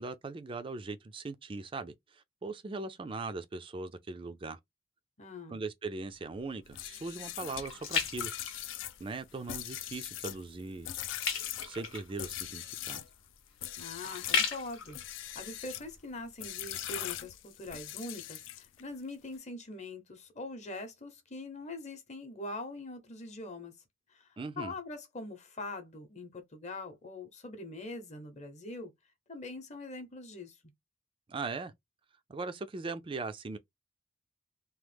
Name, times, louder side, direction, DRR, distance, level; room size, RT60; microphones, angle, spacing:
voice 1, 0.0-4.6 5.5-8.3 9.0-10.9 11.6-13.0 24.4-24.7 31.3-31.7 32.3-33.6, right 3 dB, 25° right, 0.4 m, -39 dB
voice 2, 5.2-5.6 13.8-15.0 15.3-23.7 24.1-28.9 29.3-30.6, left 2 dB, 35° left, 0.8 m, -43 dB
sound 1, 6.1-9.3 9.7-10.1 10.4-16.3 16.8-16.9, left 6 dB, 80° left, 0.8 m, -37 dB
sound 2, 6.7-13.1 13.6-14.4 14.9-15.9 16.4-18.8, left 13 dB, 65° left, 0.3 m, -41 dB
3.0 x 2.0 x 3.3 m
head